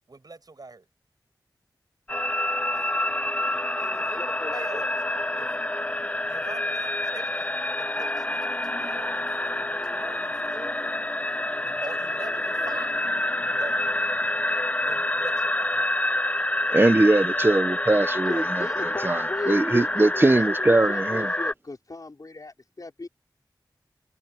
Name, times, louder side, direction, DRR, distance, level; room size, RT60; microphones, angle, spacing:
voice 1, 0.1-0.9 2.7-2.9 3.8-4.9 5.4-5.5 6.3-9.3 9.6-10.8 11.8-13.1 13.6-14.1 14.8-15.9, right 3 dB, 55° right, 7.4 m, -43 dB
sound 1, 2.1-21.5, left 1 dB, 15° left, 0.6 m, -27 dB
voice 2, 4.2-4.9 18.2-23.1, left 3 dB, 50° left, 4.9 m, -36 dB
voice 3, 16.7-21.3, right 2 dB, 30° right, 1.0 m, -21 dB
wide cardioid pair, 55°, 8 cm